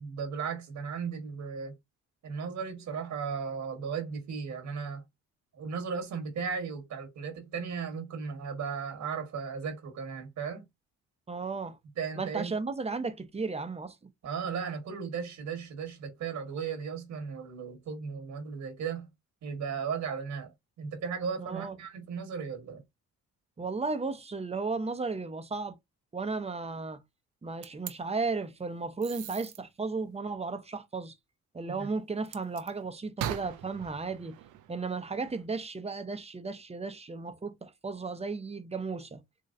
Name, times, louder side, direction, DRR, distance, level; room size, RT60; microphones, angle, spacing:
voice 1, 0.0-1.7 2.2-5.0 5.5-10.7 12.0-12.5 14.2-19.1 19.4-22.8 31.7-31.9, right 6 dB, 70° right, 1.5 m, -36 dB
voice 2, 11.3-11.8 12.2-14.0 21.4-21.8 23.6-25.7 26.1-27.0 27.4-31.1 31.5-34.4 34.7-39.2, right 4 dB, 20° right, 0.8 m, -34 dB
sound 1, 27.6-27.9 29.0-29.6 32.3-32.7 33.2-35.4, right 10 dB, 85° right, 0.7 m, -40 dB
4.1 x 3.0 x 2.5 m
cardioid pair, 90°, 30 cm